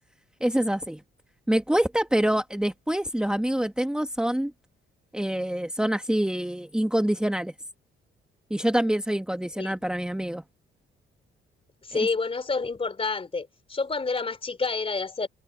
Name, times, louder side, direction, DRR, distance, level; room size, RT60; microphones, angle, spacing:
voice 1, 0.4-1.0 1.5-4.5 5.1-7.5 8.5-10.4 11.9-12.1, right 1 dB, 5° right, 1.7 m, -26 dB
voice 2, 11.9-15.3, left 4 dB, 30° left, 3.2 m, -28 dB
cardioid pair, 90°, 20 cm